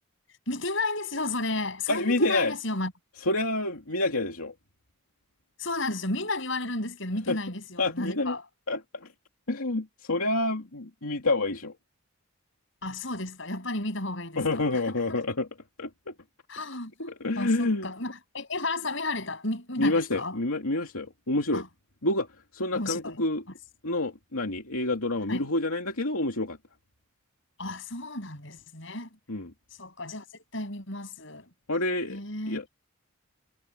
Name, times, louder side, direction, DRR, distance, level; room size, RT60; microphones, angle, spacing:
voice 1, 0.5-2.9 5.6-8.4 12.8-15.2 16.5-20.4 21.5-21.7 22.7-23.2 25.3-25.5 27.6-29.1 29.8-31.5 32.1-32.6, left 2 dB, 60° left, 7.7 m, -33 dB
voice 2, 1.9-2.5 3.3-4.5 7.3-7.4 7.8-8.3 8.7-9.1 9.5-11.7 14.4-15.5 15.8-16.1 17.0-17.9 19.8-21.6 22.0-22.3 22.5-23.4 23.8-26.6 29.3-29.5 31.7-32.2 32.5-32.6, left 2 dB, 85° left, 2.8 m, -28 dB
head